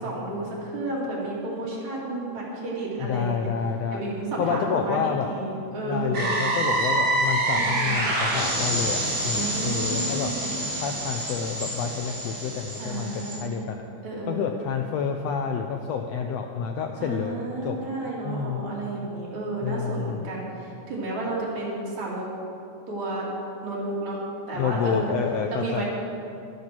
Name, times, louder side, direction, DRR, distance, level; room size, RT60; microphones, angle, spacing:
voice 1, 0.0-3.5 3.9-5.0 5.3-6.3 7.5-8.0 9.3-10.6 12.8-13.6 14.0-14.6 17.0-22.3 22.9-23.3 23.6-24.2 24.5-25.1 25.5-25.8, right 2 dB, 65° right, -5 dB, 4.1 m, -32 dB
voice 2, 3.0-4.0 4.4-5.3 5.9-10.3 10.7-13.8 14.3-17.8 18.2-18.7 19.6-20.3 24.5-25.8, left 6 dB, 75° left, 4 dB, 1.5 m, -29 dB
sound 1, 6.1-13.4, right 1 dB, 35° right, 4.1 m, -27 dB
12.5 x 12.0 x 6.1 m, 2.6 s
omnidirectional pair, 3.6 m